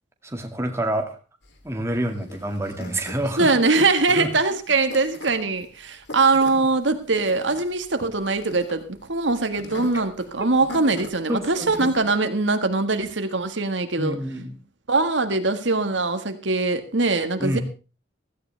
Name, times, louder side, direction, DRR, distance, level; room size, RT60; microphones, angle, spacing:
voice 1, 0.2-1.2 1.6-3.5 4.1-4.3 6.5-6.6 11.3-11.9 14.0-14.5 17.4-17.6, right 1 dB, 15° right, 4 dB, 2.0 m, -27 dB
sound 1, 1.4-12.0, left 1 dB, 65° left, 3.1 m, -41 dB
voice 2, 3.4-14.2 14.9-17.6, right 3 dB, 75° right, 8 dB, 1.8 m, -22 dB
16.5 x 15.0 x 3.4 m, 0.34 s
head